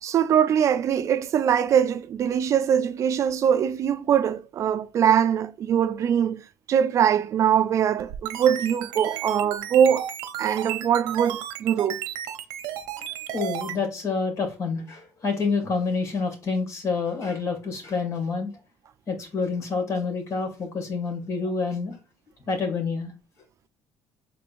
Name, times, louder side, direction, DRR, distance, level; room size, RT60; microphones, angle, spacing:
voice 1, 0.0-6.4 6.7-10.1 10.4-12.0, right 8 dB, 45° right, 0.4 m, -22 dB
sound 1, 8.0-13.8, right 12 dB, 80° right, 0.7 m, -33 dB
voice 2, 13.3-18.5 19.1-22.0 22.5-23.1, left 4 dB, 50° left, 2.0 m, -28 dB
5.2 x 3.8 x 2.5 m
cardioid pair, 110°, 7 cm